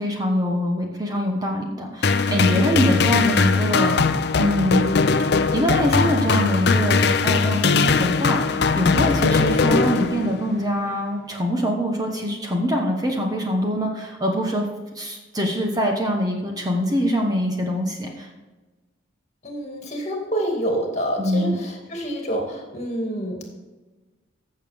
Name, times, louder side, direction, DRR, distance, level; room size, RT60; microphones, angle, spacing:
voice 1, 0.0-4.0 4.4-5.0 5.5-14.7 14.9-18.3 21.2-21.6, equal, 20° right, 1 dB, 1.0 m, -24 dB
sound 1, 2.0-10.5, left 4 dB, 55° left, 0.5 m, -20 dB
voice 2, 19.4-23.4, right 1 dB, 35° left, 1 dB, 2.2 m, -27 dB
15.0 x 6.8 x 3.5 m, 1.2 s
head